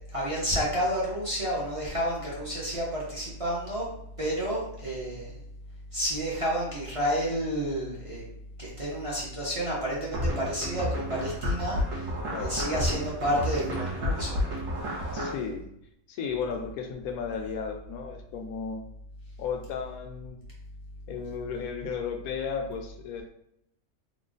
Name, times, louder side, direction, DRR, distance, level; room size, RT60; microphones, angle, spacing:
voice 1, 0.1-3.9 4.2-5.4 5.9-8.2 8.6-12.1 12.4-14.4, equal, 30° right, -5 dB, 0.8 m, -30 dB
sound 1, 10.1-15.3, left 1 dB, 65° right, 1.1 m, -30 dB
voice 2, 15.1-15.7 16.1-18.9 19.4-20.4 21.1-23.2, left 6 dB, 85° left, 4 dB, 1.0 m, -34 dB
3.1 x 2.2 x 3.8 m, 0.75 s
omnidirectional pair, 1.5 m